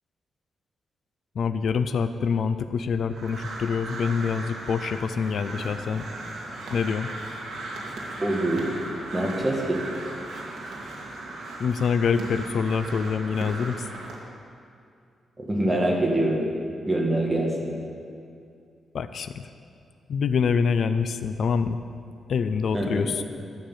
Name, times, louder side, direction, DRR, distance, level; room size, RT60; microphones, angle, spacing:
voice 1, 1.4-6.0 6.7-7.1 11.6-13.9 18.9-19.5 20.1-21.8 22.3-23.2, left 6 dB, 55° left, 10 dB, 0.5 m, -26 dB
Crow, 3.1-14.2, right 2 dB, 65° right, 2.3 m, -37 dB
voice 2, 8.2-8.7 9.1-9.8 15.4-16.4 16.9-17.7 22.7-23.1, right 1 dB, 15° right, -1 dB, 2.0 m, -24 dB
11.5 x 6.7 x 9.3 m, 2.4 s
wide cardioid pair, 150°, 0 cm